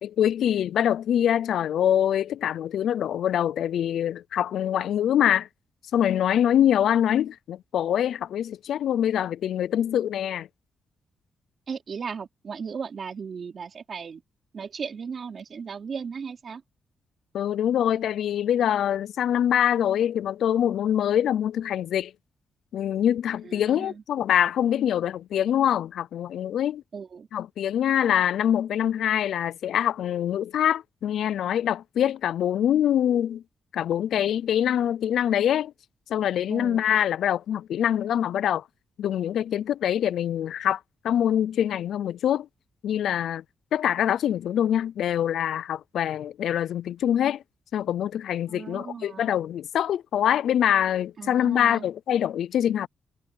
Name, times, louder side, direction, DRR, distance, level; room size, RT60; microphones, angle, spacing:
voice 1, 0.0-5.5 5.9-10.5 17.3-22.1 22.7-26.8 27.3-33.4 33.7-35.7 36.1-38.6 39.0-40.8 41.0-42.5 42.8-43.4 43.7-47.4 47.7-52.9, left 10 dB, 80° left, 0.4 m, -24 dB
voice 2, 11.7-14.2 14.5-16.6 23.4-24.0 26.9-27.3 36.5-36.8 48.5-49.3 51.2-51.9, right 6 dB, 40° right, 4.0 m, -36 dB
wide cardioid pair, 165°, 0 cm